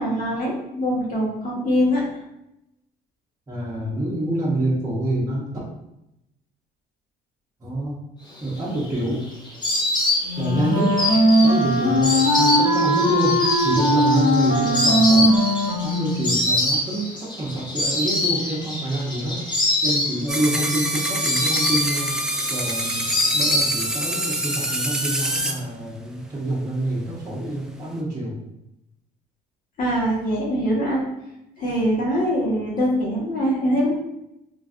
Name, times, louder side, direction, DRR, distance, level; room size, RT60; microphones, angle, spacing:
voice 1, 0.0-2.0 29.8-31.0 31.6-33.9, equal, 55° left, -4 dB, 1.1 m, -23 dB
voice 2, 3.5-5.5 7.6-7.9 8.4-9.2 10.4-11.0 11.4-15.3 15.8-19.4 19.8-22.1 22.5-23.0 23.3-28.4, right 1 dB, 20° right, -7 dB, 0.8 m, -26 dB
Insect, 8.5-24.2 24.4-25.2, left 1 dB, 25° left, 0.8 m, -25 dB
Wind instrument woodwind instrument, 10.2-16.3, equal, 85° left, 1.1 m, -19 dB
sound 1, 20.3-25.5, right 1 dB, 5° right, 0.3 m, -26 dB
3.1 x 2.4 x 2.4 m, 0.86 s
cardioid pair, 110°, 17 cm